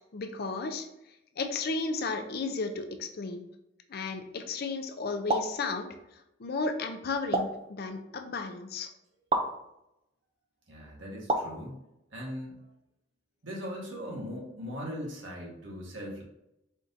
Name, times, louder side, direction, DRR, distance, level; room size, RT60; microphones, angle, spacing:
voice 1, 0.1-0.9 1.4-3.4 3.9-5.9 6.4-8.9, left 3 dB, 55° left, 6 dB, 0.5 m, -33 dB
sound 1, 5.3-5.6 7.3-7.7 9.3-9.5 11.3-11.6, right 2 dB, 30° right, 0.4 m, -28 dB
voice 2, 10.7-11.8 12.1-12.7 13.4-16.2, equal, 80° right, -2 dB, 1.3 m, -39 dB
4.5 x 2.6 x 3.8 m, 0.86 s
head